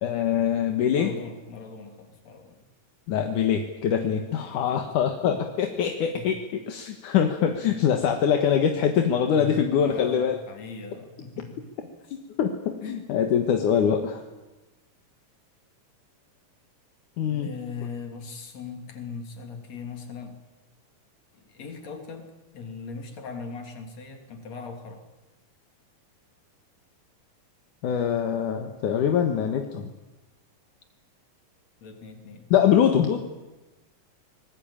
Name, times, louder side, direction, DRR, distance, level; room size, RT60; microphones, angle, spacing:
voice 1, 0.0-1.1 3.1-6.4 6.7-10.4 12.4-12.5 12.9-14.2 17.2-17.5 27.8-29.9 32.5-33.2, left 8 dB, 75° left, 4 dB, 3.0 m, -23 dB
voice 2, 0.9-2.6 4.3-4.9 5.1-5.2 6.1-6.3 7.6-7.9 9.3-11.9 12.8-13.0 17.3-20.4 21.3-25.0 31.8-32.5, left 4 dB, 55° left, 4 dB, 4.2 m, -40 dB
26.0 x 20.0 x 8.8 m, 1.1 s
omnidirectional pair, 3.7 m